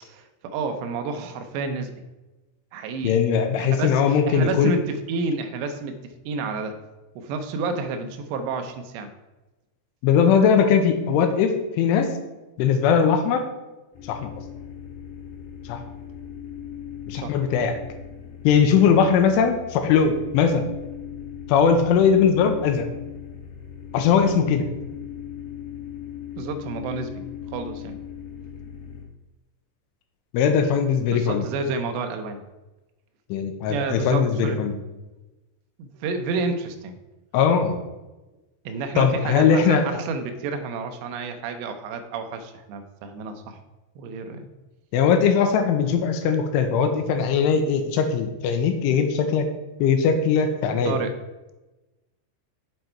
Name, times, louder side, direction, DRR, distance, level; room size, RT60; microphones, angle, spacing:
voice 1, 0.1-1.9 2.7-3.2 3.6-6.8 7.2-9.1 17.1-17.4 26.4-27.2 27.5-28.0 31.1-32.4 33.7-34.6 35.8-37.0 38.7-43.6 44.0-44.5 50.9-51.2, right 4 dB, 80° right, 6 dB, 2.5 m, -30 dB
voice 2, 3.0-4.7 10.0-12.1 12.6-13.4 14.1-14.3 15.7-15.8 17.1-17.7 18.4-20.6 21.5-22.9 23.9-24.7 30.3-31.4 33.3-34.8 37.3-37.8 39.0-40.0 44.9-49.5 49.8-51.0, left 6 dB, 80° left, 6 dB, 3.1 m, -20 dB
sound 1, 13.9-29.0, left 9 dB, 50° left, 3.2 m, -39 dB
8.0 x 7.6 x 4.4 m, 1.1 s
omnidirectional pair, 5.9 m